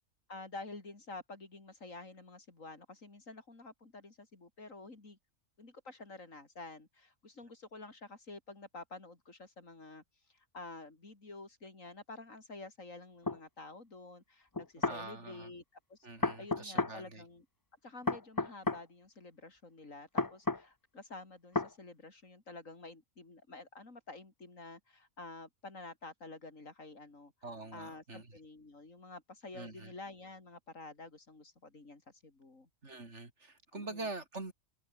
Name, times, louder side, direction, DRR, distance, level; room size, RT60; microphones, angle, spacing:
voice 1, 0.3-5.2 5.6-10.0 10.3-15.6 15.9-17.5 17.8-27.3 27.7-32.7 33.7-34.1, left 3 dB, 75° left, 4.3 m, -50 dB
sound 1, 13.3-13.4 14.5-15.0 16.2-17.0 18.1-18.8 20.2-20.6 21.5-21.7, left 3 dB, 20° left, 0.8 m, -32 dB
voice 2, 14.8-15.5 16.0-17.2 27.4-28.3 29.5-29.9 32.8-34.5, right 3 dB, 60° right, 3.7 m, -44 dB
omnidirectional pair, 1.4 m